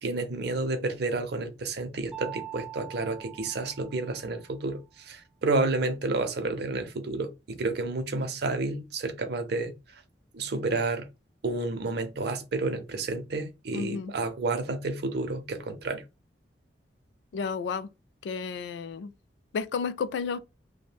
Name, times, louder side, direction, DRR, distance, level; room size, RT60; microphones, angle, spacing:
voice 1, 0.0-9.7 10.3-11.1 11.4-16.0, right 3 dB, 65° right, 0.5 m, -30 dB
Mallet percussion, 2.1-4.6, right 11 dB, 5° right, 0.4 m, -43 dB
voice 2, 13.7-14.1 17.3-17.9 18.2-19.1 19.5-20.4, left 5 dB, 75° left, 0.3 m, -32 dB
2.5 x 2.1 x 3.2 m
head